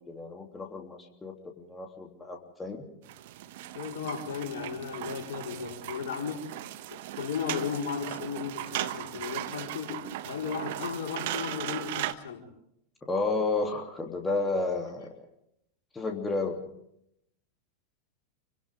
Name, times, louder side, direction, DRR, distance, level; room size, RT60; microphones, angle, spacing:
voice 1, 0.0-2.9 13.1-15.1 15.9-16.6, left 3 dB, 15° left, 2 dB, 3.2 m, -32 dB
sound 1, 3.0-12.1, right 14 dB, 55° right, 1.3 m, -37 dB
voice 2, 3.7-6.5 6.9-12.4, left 6 dB, 65° left, 2 dB, 4.7 m, -35 dB
29.0 x 25.0 x 3.7 m, 0.76 s
figure-of-eight pair, 90°, 0 cm